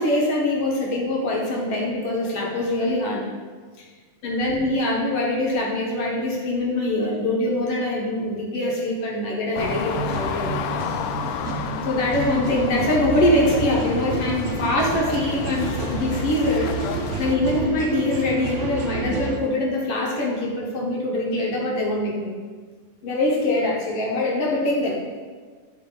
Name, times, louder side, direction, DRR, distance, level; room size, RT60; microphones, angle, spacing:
voice 1, 0.0-3.3 4.2-10.6 11.2-11.6 11.9-16.7 17.0-22.4 23.0-25.2, left 1 dB, 60° left, -3 dB, 1.8 m, -24 dB
sound 1, 9.6-17.4, left 7 dB, 90° left, 2.1 m, -31 dB
sound 2, 9.6-19.4, right 4 dB, 70° right, 1.7 m, -30 dB
12.5 x 4.2 x 3.8 m, 1.5 s
omnidirectional pair, 3.6 m